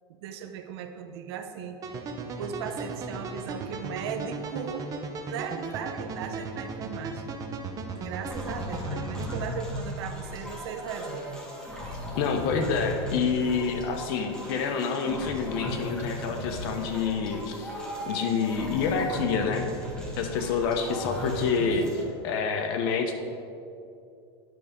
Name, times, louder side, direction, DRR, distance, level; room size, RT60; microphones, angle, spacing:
voice 1, 0.1-1.8 2.4-4.9 5.3-7.2 8.0-11.4, right 7 dB, 75° right, 7 dB, 0.6 m, -37 dB
sound 1, 1.8-9.4, right 3 dB, 25° right, 0.7 m, -36 dB
sound 2, 8.3-22.0, left 1 dB, 5° left, 1.6 m, -36 dB
voice 2, 12.2-17.7 18.1-19.7 20.2-23.1, left 5 dB, 60° left, 5 dB, 0.8 m, -28 dB
10.5 x 6.5 x 3.6 m, 2.5 s
supercardioid pair, 145°, 14 cm